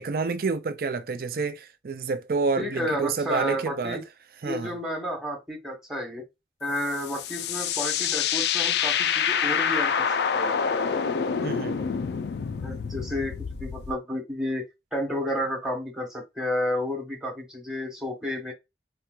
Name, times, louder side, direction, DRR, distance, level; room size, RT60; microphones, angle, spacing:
voice 1, 0.0-4.0 4.4-4.8 11.4-11.8, right 4 dB, 55° right, 0.4 m, -29 dB
voice 2, 2.6-4.0 4.4-6.2 6.6-10.1 10.3-10.5 12.6-13.3 13.6-14.6 14.9-18.5, equal, 5° right, 1.1 m, -31 dB
sound 1, 6.8-13.9, left 7 dB, 70° left, 0.3 m, -27 dB
4.2 x 2.3 x 2.3 m
head